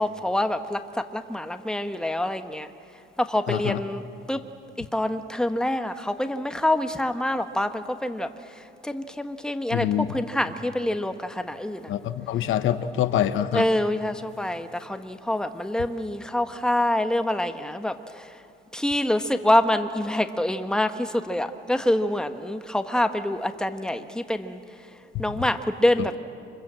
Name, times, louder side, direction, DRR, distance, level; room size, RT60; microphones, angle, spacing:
voice 1, 0.0-2.7 3.2-4.4 4.8-8.3 8.8-11.9 13.5-18.3 18.7-24.6 25.2-26.2, left 1 dB, 5° left, 8 dB, 1.2 m, -26 dB
voice 2, 3.5-3.8 9.7-10.1 11.9-13.7 25.1-25.4, left 11 dB, 80° left, 11 dB, 0.9 m, -25 dB
25.5 x 22.0 x 7.6 m, 2.5 s
cardioid pair, 90°, 20 cm